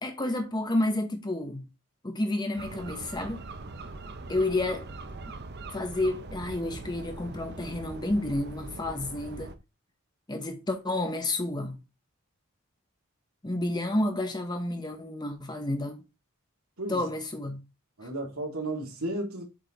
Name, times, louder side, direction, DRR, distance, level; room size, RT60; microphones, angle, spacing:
voice 1, 0.0-1.7 2.0-3.4 4.3-4.9 5.7-9.5 10.3-11.8 13.4-16.0 16.9-17.6, left 1 dB, 20° left, 1.0 m, -30 dB
sound 1, 2.6-9.6, right 3 dB, 50° right, 0.8 m, -41 dB
voice 2, 18.0-19.4, right 1 dB, 80° right, 2.7 m, -33 dB
7.6 x 5.1 x 4.0 m
head